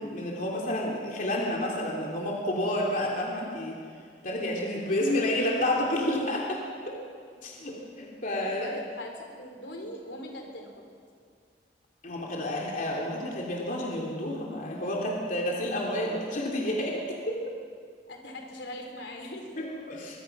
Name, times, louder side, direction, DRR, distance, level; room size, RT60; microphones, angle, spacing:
voice 1, 0.0-3.8 4.2-7.0 7.4-8.7 12.0-17.5 19.6-20.2, left 1 dB, 50° left, -2 dB, 3.1 m, -30 dB
voice 2, 8.4-10.9 18.1-19.6, left 1 dB, 80° left, 2 dB, 4.2 m, -41 dB
23.5 x 23.0 x 6.0 m, 2.2 s
head